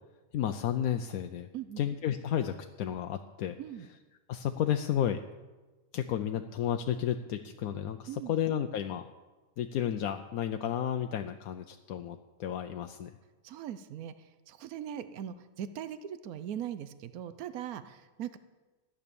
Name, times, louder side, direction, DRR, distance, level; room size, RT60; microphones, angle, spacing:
voice 1, 0.3-1.5 1.8-3.5 4.3-5.2 5.9-9.1 9.6-13.1, left 10 dB, 85° left, 7 dB, 1.1 m, -32 dB
voice 2, 13.4-18.4, right 10 dB, 85° right, 12 dB, 1.2 m, -40 dB
13.5 x 10.0 x 6.9 m, 1.2 s
omnidirectional pair, 1.5 m